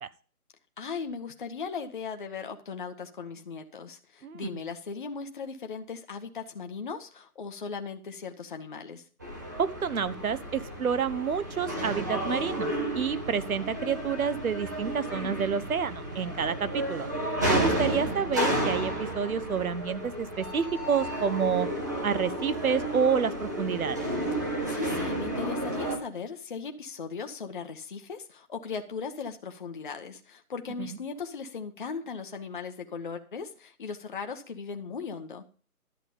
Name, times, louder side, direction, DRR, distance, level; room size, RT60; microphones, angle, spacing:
voice 1, 0.8-9.0 17.4-18.2 24.4-35.4, left 5 dB, 35° left, 5 dB, 0.9 m, -38 dB
sound 1, 9.2-26.0, right 1 dB, 10° right, 0.8 m, -32 dB
voice 2, 9.6-17.1 17.5-21.7 22.0-24.1 30.8-31.0, right 6 dB, 65° right, 15 dB, 1.0 m, -29 dB
11.5 x 7.3 x 5.3 m, 0.39 s
hypercardioid pair, 160°, 45 cm